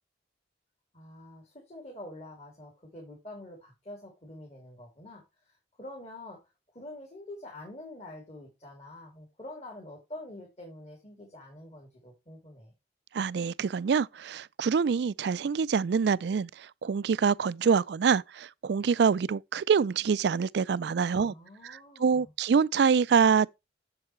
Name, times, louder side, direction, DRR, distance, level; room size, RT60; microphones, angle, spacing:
voice 1, 0.9-5.5 5.8-6.4 6.7-12.7 21.1-22.3, left 1 dB, 35° left, 2.9 m, -46 dB
voice 2, 13.1-21.3 21.6-23.5, right 6 dB, 65° right, 0.4 m, -25 dB
7.8 x 7.5 x 3.2 m
head